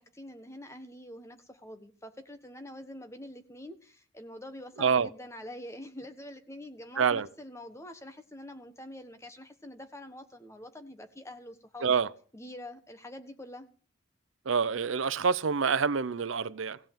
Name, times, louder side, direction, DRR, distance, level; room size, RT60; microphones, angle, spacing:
voice 1, 0.0-11.9 12.3-13.7, left 1 dB, 15° left, 1.2 m, -45 dB
voice 2, 4.8-5.1 7.0-7.3 11.8-12.1 14.5-16.8, right 6 dB, 85° right, 0.6 m, -27 dB
16.5 x 5.6 x 8.9 m
head